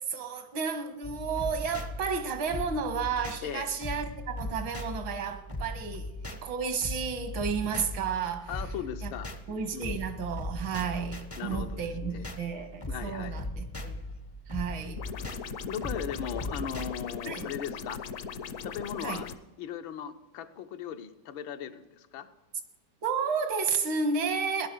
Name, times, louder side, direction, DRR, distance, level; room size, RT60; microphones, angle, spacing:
voice 1, 0.1-8.5 9.0-9.1 9.5-14.0 14.5-15.0 17.3-17.5 19.0-19.2 23.0-24.7, right 5 dB, 85° right, 2.1 m, -32 dB
sound 1, 1.0-16.9, left 1 dB, 30° left, 0.5 m, -39 dB
voice 2, 3.4-3.8 8.5-9.3 9.7-10.0 11.4-12.3 12.9-13.4 14.7-14.8 15.7-18.0 18.6-19.3 19.6-22.3, left 8 dB, 80° left, 1.7 m, -38 dB
sound 2, 15.0-19.4, left 6 dB, 60° left, 0.9 m, -39 dB
17.0 x 11.0 x 6.7 m
omnidirectional pair, 2.1 m